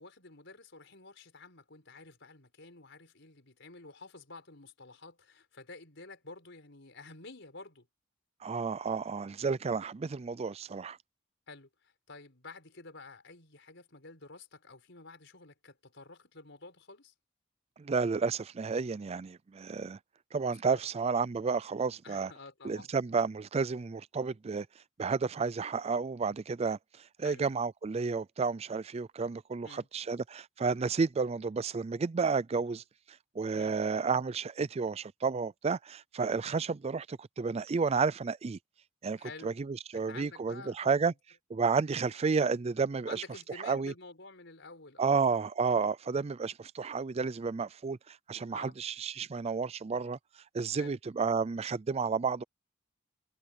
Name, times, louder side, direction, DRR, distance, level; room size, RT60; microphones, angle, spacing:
voice 1, 0.0-7.9 11.5-17.1 20.5-20.8 22.0-22.9 27.2-27.5 29.6-29.9 33.5-33.8 39.2-39.5 39.9-40.9 43.0-45.2 48.5-48.8 50.8-51.0, left 3 dB, 65° left, 5.6 m, -50 dB
voice 2, 8.4-11.0 17.8-20.0 20.3-22.3 22.6-24.7 25.0-26.8 27.2-32.8 33.4-38.6 39.0-41.1 41.5-43.2 43.6-43.9 45.0-50.2 50.5-52.4, right 5 dB, 30° right, 0.4 m, -31 dB
head